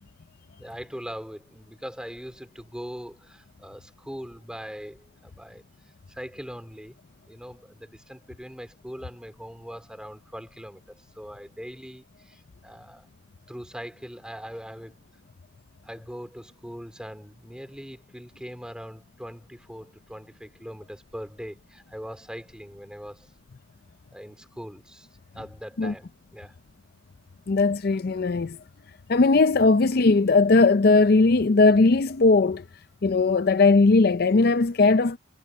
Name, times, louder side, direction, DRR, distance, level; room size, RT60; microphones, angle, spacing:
voice 1, 0.6-5.6 6.1-7.0 7.3-13.1 13.5-15.0 15.8-23.3 24.1-25.1 25.3-26.6, equal, 5° right, 3.1 m, -41 dB
voice 2, 27.5-28.6 29.1-32.6 33.0-35.2, left 3 dB, 50° left, 0.5 m, -19 dB
head